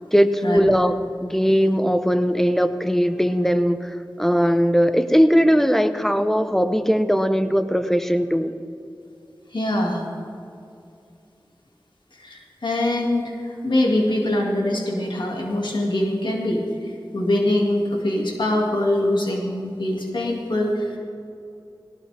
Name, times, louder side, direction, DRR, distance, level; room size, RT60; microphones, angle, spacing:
voice 1, 0.1-0.9 1.2-8.5, equal, 5° left, 10 dB, 0.8 m, -19 dB
voice 2, 9.5-10.1 12.2-21.0, left 1 dB, 75° left, -1 dB, 2.2 m, -23 dB
18.0 x 17.5 x 3.4 m, 2.6 s
wide cardioid pair, 55°, 8 cm